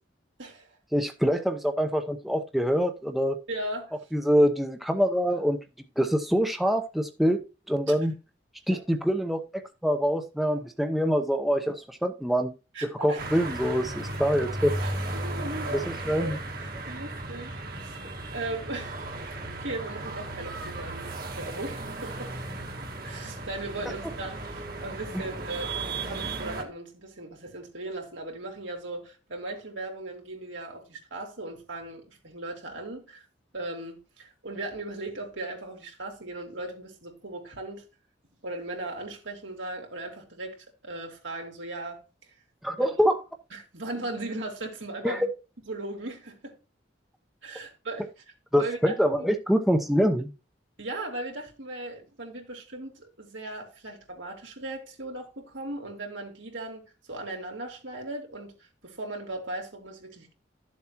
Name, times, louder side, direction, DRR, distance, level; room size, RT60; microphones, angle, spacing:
voice 1, 0.9-3.4 4.1-5.6 6.0-7.4 7.7-8.1 8.7-9.4 9.8-12.5 13.0-14.7 16.1-16.4 42.6-43.2 45.0-45.2 48.5-50.3, equal, ahead, 0.7 m, -25 dB
voice 2, 3.5-3.9 7.8-7.9 8.7-8.8 12.7-13.2 14.8-15.9 16.1-18.0 18.3-19.0 19.3-22.3 23.0-25.7 26.0-33.2 33.5-37.8 38.4-40.6 40.8-42.3 42.8-42.9 43.5-45.3 45.7-46.6 47.4-48.1 48.5-49.3 50.8-56.8 57.1-60.3, right 2 dB, 85° right, 3.2 m, -38 dB
sound 1, 13.2-26.6, right 2 dB, 50° right, 1.7 m, -35 dB
12.5 x 7.2 x 3.0 m
head